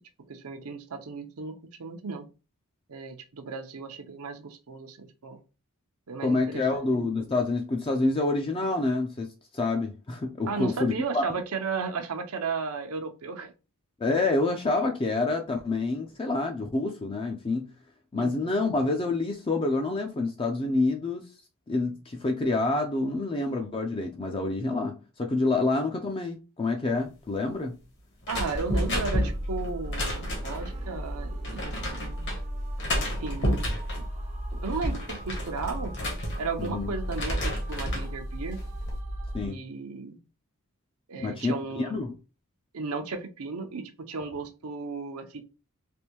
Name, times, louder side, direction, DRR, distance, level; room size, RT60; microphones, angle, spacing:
voice 1, 0.3-2.3 2.9-5.4 6.1-6.9 10.5-13.5 18.1-18.6 28.3-32.3 33.2-33.6 34.0-34.1 34.5-36.0 36.4-38.6 39.4-40.2 41.1-42.0 42.7-45.4, right 4 dB, 75° right, 0.7 m, -35 dB
voice 2, 6.2-11.2 14.0-17.7 18.1-21.3 21.7-27.7 36.6-36.9 39.3-39.6 41.2-42.1, left 3 dB, 25° left, 0.4 m, -27 dB
sound 1, 28.2-30.7 31.4-32.4 32.8-34.0 34.5-36.7 37.0-38.1 38.6-39.0, equal, 55° left, 1.2 m, -31 dB
sound 2, 28.3-39.5, equal, 30° right, 0.5 m, -35 dB
3.3 x 2.6 x 3.0 m
head